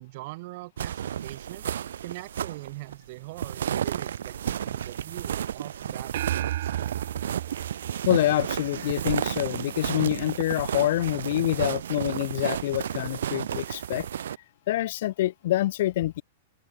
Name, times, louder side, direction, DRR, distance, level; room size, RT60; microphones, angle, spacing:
voice 1, 0.0-1.7 2.0-6.9 7.4-7.5, right 22 dB, 40° right, 1.6 m, -42 dB
sound 1, 0.8-14.4, right 9 dB, 90° right, 0.5 m, -32 dB
sound 2, 6.1-8.8, right 13 dB, 55° right, 0.7 m, -33 dB
voice 2, 8.0-14.1 14.7-16.2, left 15 dB, 55° left, 1.2 m, -26 dB
open air
supercardioid pair, 170°, 0 cm